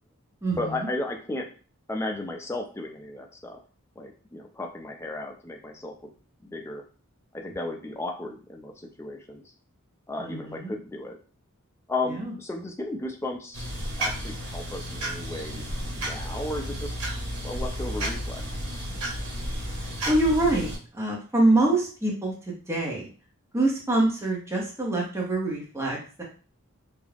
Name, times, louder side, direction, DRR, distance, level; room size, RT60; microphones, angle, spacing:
voice 1, 0.6-1.5 1.9-3.6 4.0-5.9 6.4-6.8 7.3-9.5 10.1-11.2 11.9-13.7 14.0-17.0 17.4-18.4, left 2 dB, 10° left, 2 dB, 0.4 m, -34 dB
voice 2, 10.2-10.7 12.2-12.3 20.1-23.1 23.5-26.2, right 2 dB, 15° right, -2 dB, 0.7 m, -25 dB
sound 1, 13.5-20.8, equal, 90° right, 0.9 m, -32 dB
2.3 x 2.0 x 3.2 m, 0.38 s
head